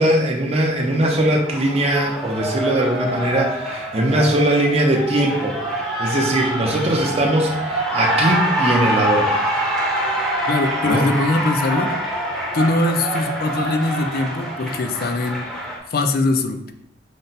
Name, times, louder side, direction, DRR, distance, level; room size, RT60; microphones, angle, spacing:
voice 1, 0.0-5.6 6.0-9.3 10.8-11.0, right 1 dB, 35° right, 1 dB, 0.6 m, -20 dB
Cheering, 0.6-15.8, right 1 dB, ahead, 0.7 m, -25 dB
voice 2, 10.5-12.0 12.5-15.5 15.9-16.7, left 2 dB, 55° left, 6 dB, 0.4 m, -21 dB
5.2 x 2.2 x 4.0 m, 0.79 s
head